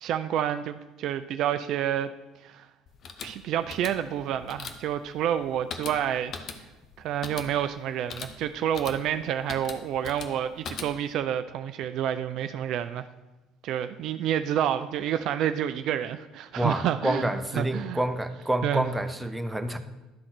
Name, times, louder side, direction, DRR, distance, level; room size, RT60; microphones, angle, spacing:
voice 1, 0.0-2.1 2.4-2.7 3.2-6.3 7.0-13.1 13.6-17.3 17.6-18.0 18.6-18.9, right 10 dB, 60° right, 11 dB, 0.3 m, -29 dB
sound 1, 2.9-11.2, left 5 dB, 50° left, 0.8 m, -41 dB
voice 2, 16.6-19.8, right 1 dB, 10° right, 8 dB, 0.7 m, -28 dB
11.5 x 3.9 x 6.0 m, 1.1 s
hypercardioid pair, 60°, 0 cm